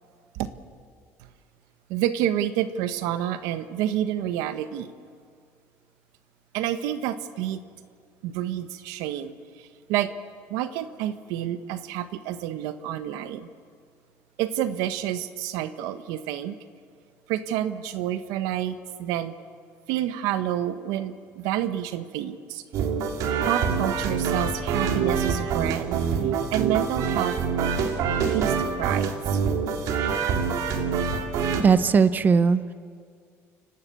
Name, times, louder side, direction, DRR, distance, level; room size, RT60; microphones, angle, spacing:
voice 1, 1.9-4.9 6.5-7.6 8.2-10.1 10.5-13.5 14.4-16.5 17.3-19.3 19.9-22.6 23.5-26.0 26.5-27.4 28.3-29.4, right 11 dB, 85° right, 11 dB, 1.1 m, -29 dB
sound 1, 22.7-31.6, right 6 dB, 70° right, 2.3 m, -25 dB
voice 2, 31.6-32.7, right 5 dB, 30° right, 14 dB, 0.7 m, -19 dB
29.0 x 12.5 x 8.5 m, 2.1 s
cardioid pair, 115°, 6 cm